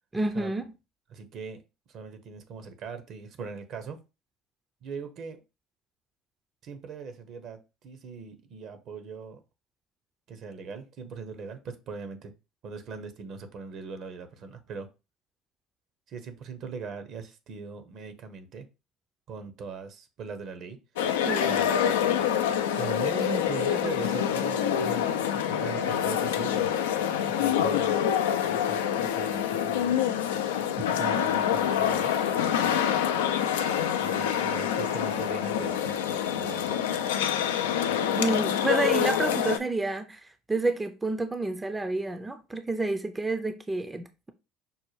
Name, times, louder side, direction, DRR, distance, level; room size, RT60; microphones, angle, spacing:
voice 1, 0.1-0.7 21.3-21.6 38.2-44.3, right 2 dB, 15° right, 0.4 m, -29 dB
voice 2, 1.1-1.6 1.9-4.0 4.8-5.4 6.6-9.4 10.3-12.3 12.6-14.9 16.1-18.7 19.3-20.8 21.4-22.2 22.8-26.7 27.3-28.0 28.5-30.0 30.8-32.2 34.0-36.8, right 5 dB, 55° right, 0.7 m, -40 dB
sound 1, 21.0-39.6, left 9 dB, 85° left, 0.3 m, -26 dB
5.3 x 2.2 x 3.1 m
hypercardioid pair, 75°, 0 cm